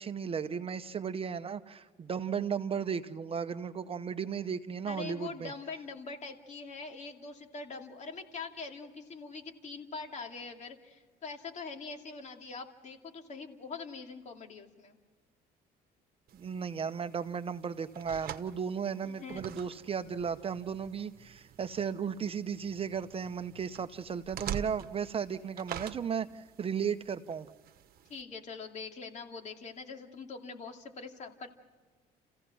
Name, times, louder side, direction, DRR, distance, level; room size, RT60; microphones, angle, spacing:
voice 1, 0.0-5.5 16.3-27.5, right 7 dB, 35° right, 10 dB, 0.8 m, -35 dB
voice 2, 4.9-15.0 19.0-19.5 28.1-31.5, left 4 dB, 45° left, 3 dB, 2.6 m, -43 dB
sound 1, 16.3-28.2, right 9 dB, 60° right, 1.1 m, -46 dB
30.0 x 15.5 x 6.2 m, 1.4 s
cardioid pair, 110°, 17 cm